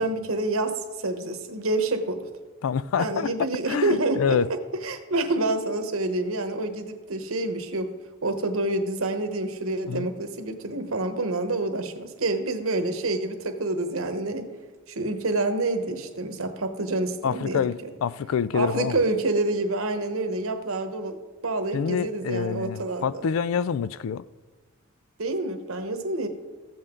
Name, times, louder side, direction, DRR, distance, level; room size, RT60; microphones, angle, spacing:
voice 1, 0.0-2.3 3.0-7.9 8.2-14.5 14.9-17.7 18.5-23.1 25.2-26.3, right 2 dB, 75° right, 1.0 m, -27 dB
voice 2, 2.6-4.5 9.9-10.1 17.2-19.0 21.7-24.2, left 7 dB, 70° left, 0.3 m, -27 dB
14.5 x 7.9 x 3.7 m
head